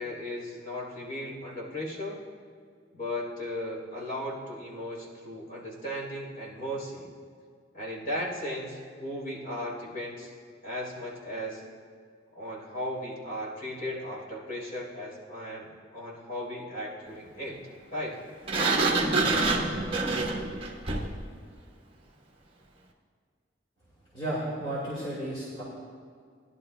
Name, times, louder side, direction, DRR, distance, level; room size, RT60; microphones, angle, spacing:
voice 1, 0.0-2.2 2.9-7.1 7.7-10.3 10.6-11.6 12.3-15.7 15.9-17.6 17.9-18.2, left 1 dB, 45° left, -4 dB, 3.3 m, -36 dB
Sliding door, 18.5-21.2, right 3 dB, 30° right, 1.1 m, -26 dB
voice 2, 24.1-25.6, right 1 dB, 25° left, -7 dB, 1.9 m, -33 dB
18.0 x 11.0 x 2.2 m, 2.1 s
head